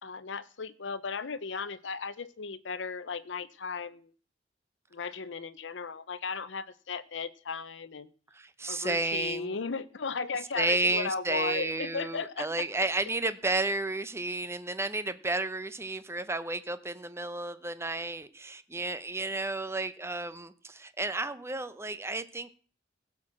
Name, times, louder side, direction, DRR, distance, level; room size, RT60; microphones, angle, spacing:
voice 1, 0.0-4.1 4.9-8.1 8.7-12.6, left 5 dB, 70° left, 13 dB, 0.6 m, -36 dB
voice 2, 8.3-9.6 10.6-22.5, right 2 dB, 15° right, 13 dB, 0.7 m, -32 dB
16.0 x 6.1 x 7.5 m, 0.41 s
head